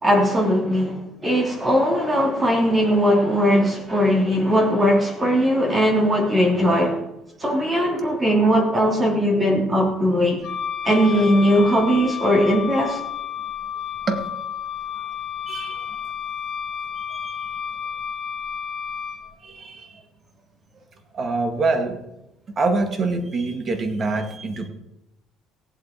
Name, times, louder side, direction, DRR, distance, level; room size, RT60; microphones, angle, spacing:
voice 1, 0.0-7.0 7.4-10.5 10.8-13.0, equal, 20° right, 0 dB, 2.9 m, -19 dB
Wind instrument woodwind instrument, 10.4-19.2, left 8 dB, 55° left, 2.4 m, -31 dB
voice 2, 15.5-16.0 17.0-17.5 19.4-20.0 21.1-22.0 22.6-24.7, right 3 dB, 40° right, 7 dB, 2.0 m, -25 dB
17.0 x 8.0 x 4.4 m, 0.90 s
cardioid pair, 100°, 0 cm